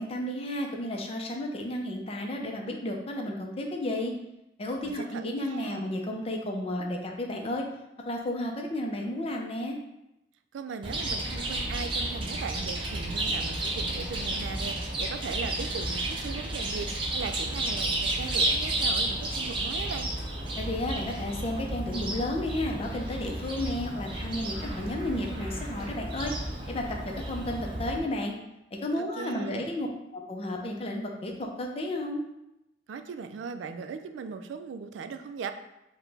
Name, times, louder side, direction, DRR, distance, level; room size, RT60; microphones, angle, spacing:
voice 1, 0.0-4.1 4.6-7.6 8.1-9.8 20.6-26.3 26.7-28.3 28.7-32.2, left 1 dB, 35° left, 1 dB, 0.5 m, -32 dB
voice 2, 4.8-5.8 10.5-20.1 29.0-29.7 32.9-35.5, right 5 dB, 90° right, 8 dB, 0.3 m, -38 dB
Chirp tweet, 10.8-28.0, right 1 dB, 30° right, 0.5 m, -32 dB
4.9 x 2.2 x 3.3 m, 0.89 s
head